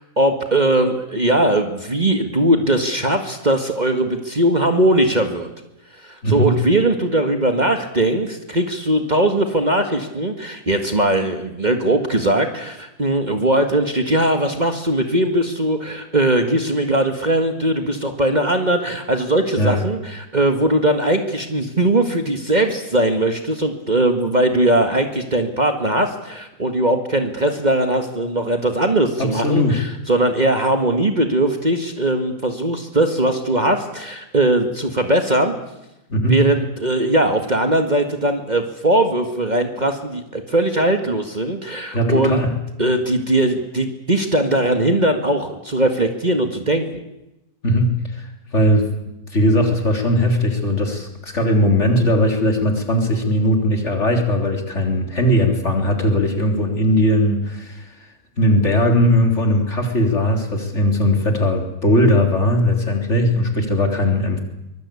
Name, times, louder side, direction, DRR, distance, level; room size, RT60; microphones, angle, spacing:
voice 1, 0.0-5.5 5.9-35.6 36.3-42.4 42.8-46.9, right 1 dB, 30° right, 6 dB, 1.9 m, -19 dB
voice 2, 6.2-6.6 19.6-19.8 29.2-29.9 36.1-36.4 41.9-42.5 47.6-48.9 49.3-64.4, equal, 50° left, 3 dB, 3.9 m, -19 dB
24.0 x 21.0 x 8.5 m, 0.91 s
omnidirectional pair, 1.6 m